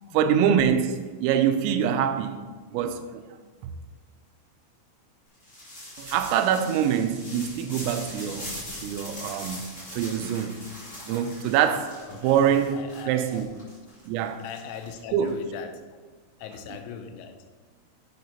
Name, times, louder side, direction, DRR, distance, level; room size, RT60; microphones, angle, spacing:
voice 1, 0.1-2.4 2.7-3.2 6.0-8.5 8.8-10.6 11.1-12.0 12.2-13.5 14.1-14.4 15.1-15.4, right 8 dB, 90° right, 3.3 m, -24 dB
sound 1, 5.4-15.3, left 1 dB, 20° left, 2.0 m, -41 dB
voice 2, 12.0-12.3 12.7-13.5 14.4-15.8 16.4-17.5, left 7 dB, 90° left, 3.5 m, -39 dB
10.5 x 8.4 x 2.9 m
omnidirectional pair, 5.9 m